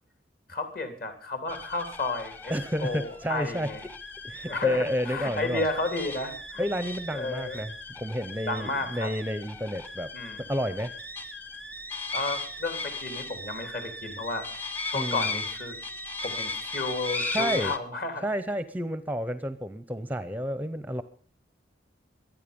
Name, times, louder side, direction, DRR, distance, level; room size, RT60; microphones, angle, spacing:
voice 1, 0.5-2.5 2.8-3.8 4.5-6.6 7.1-7.6 8.5-9.1 10.1-10.4 12.1-15.8 16.2-18.2, left 2 dB, 50° left, 7 dB, 3.2 m, -32 dB
sound 1, 1.5-17.8, left 3 dB, 10° left, 1.0 m, -37 dB
voice 2, 2.5-3.7 4.2-5.7 6.6-10.1 10.4-10.9 14.9-15.4 17.3-17.7 18.2-21.0, equal, 10° right, 13 dB, 0.6 m, -30 dB
24.0 x 9.3 x 5.3 m, 0.44 s
head